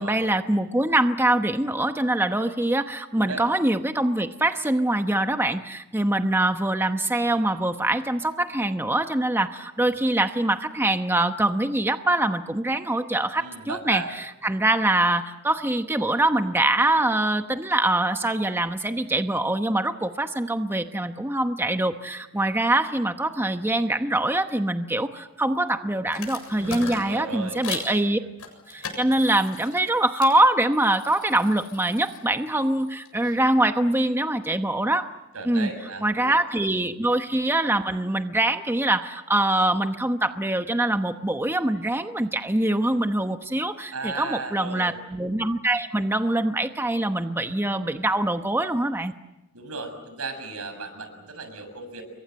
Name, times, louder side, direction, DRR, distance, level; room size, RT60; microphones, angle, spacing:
voice 1, 0.0-28.2 28.7-35.1 35.4-35.7 36.0-49.1, right 1 dB, 10° right, 7 dB, 0.9 m, -24 dB
voice 2, 13.4-14.1 26.6-27.6 35.3-36.3 43.9-44.9 49.5-52.0, right 3 dB, 80° right, 8 dB, 6.7 m, -35 dB
sound 1, 26.1-27.9 28.4-30.4 30.7-33.4, left 5 dB, 80° left, 7.6 m, -39 dB
30.0 x 24.0 x 7.7 m, 1.0 s
head